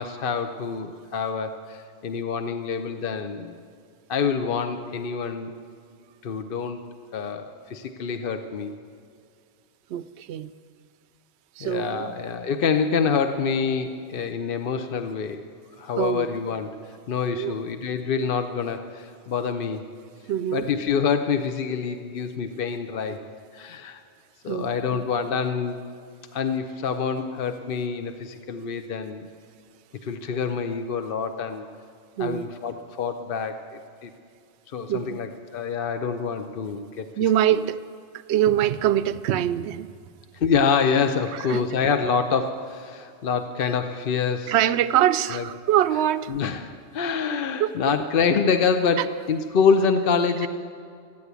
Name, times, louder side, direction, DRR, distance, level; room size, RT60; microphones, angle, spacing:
voice 1, 0.0-3.6 4.1-5.5 6.2-6.8 7.1-8.7 11.6-15.4 15.8-16.8 17.1-19.8 20.5-23.2 23.5-24.0 24.4-25.8 26.3-29.3 30.0-31.6 32.2-34.1 34.7-37.1 37.5-37.6 40.3-44.5 45.3-45.5 46.3-50.5, left 5 dB, 55° left, 8 dB, 0.8 m, -26 dB
voice 2, 9.9-10.5 11.6-12.2 16.0-16.3 17.3-17.5 20.3-20.6 24.5-24.7 32.2-32.5 34.9-35.2 37.2-37.8 38.3-39.9 41.5-41.6 44.5-46.3 47.6-47.8 49.0-49.1, right 11 dB, 70° right, 12 dB, 0.8 m, -23 dB
14.5 x 10.5 x 8.1 m, 2.3 s
omnidirectional pair, 1.3 m